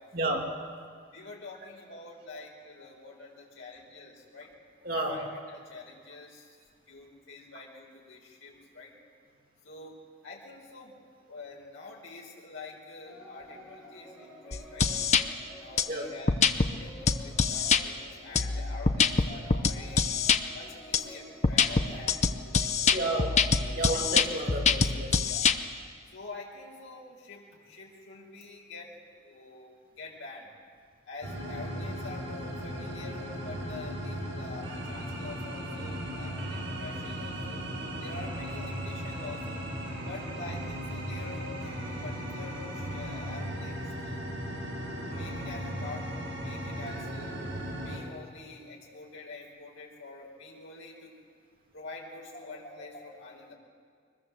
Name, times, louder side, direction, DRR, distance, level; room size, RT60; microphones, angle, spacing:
voice 1, 1.1-4.5 5.0-6.6 6.9-8.9 9.6-14.9 15.6-20.0 20.5-23.2 23.6-24.0 25.2-25.5 26.1-29.7 30.0-30.5 31.0-37.6 38.0-39.7 40.0-44.2 44.9-47.4 47.8-51.1 51.7-53.5, left 3 dB, 90° left, -2 dB, 5.0 m, -46 dB
voice 2, 4.8-5.2 15.9-16.1 22.9-23.3 23.7-25.2, right 1 dB, 45° right, 0 dB, 2.8 m, -31 dB
sound 1, 13.0-25.8, right 1 dB, 5° right, 7.2 m, -50 dB
sound 2, 14.5-15.2 15.8-15.9 16.3-16.7 17.1-17.8 18.4-20.4 20.9-21.0 21.4-25.6, left 5 dB, 35° left, 0.8 m, -24 dB
sound 3, 31.2-48.0, equal, 80° right, 8.0 m, -37 dB
23.5 x 20.5 x 7.5 m, 2.1 s
head